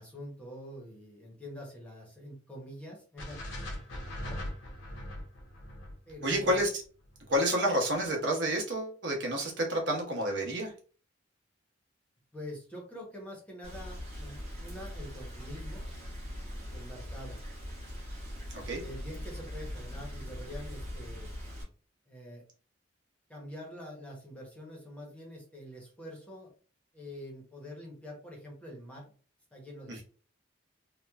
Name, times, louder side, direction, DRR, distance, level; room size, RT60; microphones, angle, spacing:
voice 1, 0.0-3.4 4.2-4.4 6.1-6.6 12.3-15.9 16.7-17.4 18.6-21.3 22.1-22.4 23.3-26.5 26.9-29.1 29.5-30.0, equal, 5° left, -2 dB, 0.7 m, -45 dB
sound 1, 3.2-7.4, left 1 dB, 75° left, 0.7 m, -41 dB
voice 2, 6.2-6.8 7.3-10.7 18.5-18.8 29.9-30.0, equal, 65° right, 0 dB, 0.8 m, -29 dB
Rain, 13.6-21.6, equal, 35° right, 0.8 m, -41 dB
2.9 x 2.1 x 2.2 m, 0.40 s
head